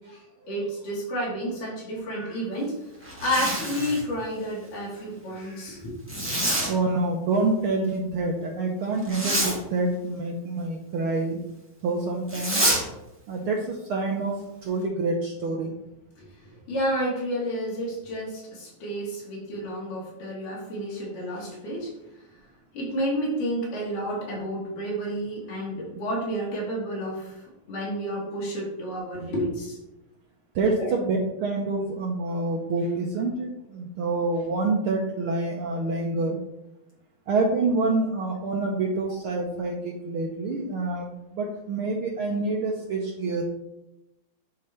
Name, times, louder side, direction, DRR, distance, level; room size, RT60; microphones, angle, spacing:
voice 1, 0.1-2.7 3.2-5.9 16.7-21.9 22.7-29.8 30.8-30.9, equal, 90° left, -6 dB, 3.4 m, -30 dB
Zipper (clothing), 3.0-4.1 6.1-6.7 9.0-9.6 12.3-12.8, right 1 dB, 5° right, 0.9 m, -26 dB
voice 2, 6.7-11.4 11.8-12.6 13.3-14.4 14.6-15.7 30.5-36.4 37.3-43.4, right 3 dB, 85° right, 0 dB, 1.2 m, -27 dB
9.6 x 3.8 x 4.3 m, 0.90 s
omnidirectional pair, 3.4 m